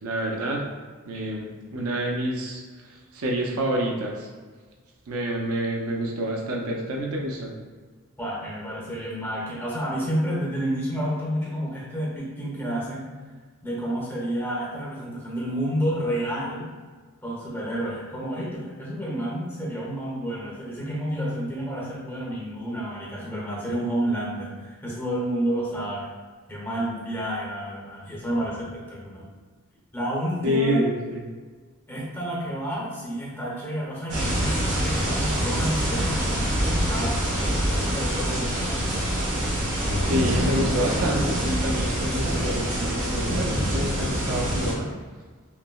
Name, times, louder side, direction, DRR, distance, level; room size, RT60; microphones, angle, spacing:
voice 1, 0.0-0.6 1.1-4.3 5.1-7.6 30.4-31.2 40.1-44.9, equal, 85° right, 0 dB, 0.6 m, -28 dB
voice 2, 8.2-13.1 13.6-16.7 17.2-26.1 26.5-29.2 29.9-30.8 31.9-38.9, equal, 10° left, -5 dB, 0.9 m, -30 dB
sound 1, 34.1-44.7, equal, 60° right, 1.4 m, -25 dB
5.5 x 2.1 x 2.3 m, 1.5 s
head